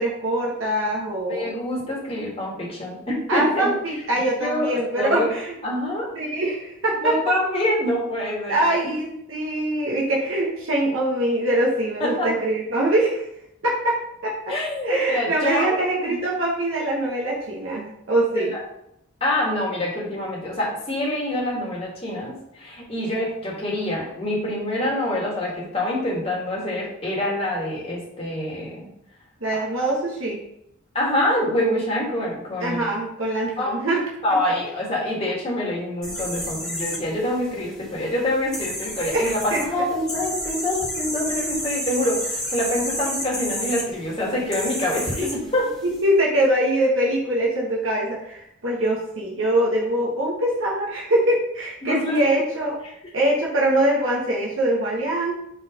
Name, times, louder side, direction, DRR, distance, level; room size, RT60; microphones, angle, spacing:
voice 1, 0.0-1.5 3.3-5.6 6.1-7.2 8.5-13.3 13.6-14.5 14.8-18.5 29.4-30.4 32.6-34.1 39.1-39.6 45.8-52.8 53.1-55.3, right 1 dB, 70° right, -3 dB, 1.3 m, -23 dB
voice 2, 1.3-3.7 4.4-5.3 5.6-6.1 7.0-8.9 12.0-12.3 14.5-16.2 18.4-18.6 19.2-28.9 30.9-32.9 33.6-33.7 34.2-45.7 51.8-52.2, left 1 dB, 25° left, -4 dB, 2.0 m, -26 dB
sound 1, 36.0-46.0, equal, 5° left, 1.4 m, -31 dB
5.6 x 4.1 x 5.0 m, 0.77 s
head